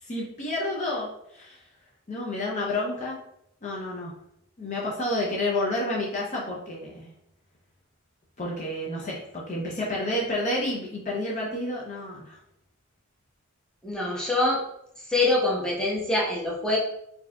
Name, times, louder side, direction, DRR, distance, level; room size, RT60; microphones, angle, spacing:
voice 1, 0.0-1.6 2.1-3.2 3.6-4.1 4.6-7.1 8.4-12.4, left 1 dB, 35° left, -3 dB, 0.5 m, -30 dB
voice 2, 13.8-14.6 15.0-16.8, left 2 dB, 5° left, -5 dB, 0.8 m, -25 dB
4.4 x 2.7 x 2.2 m, 0.77 s
head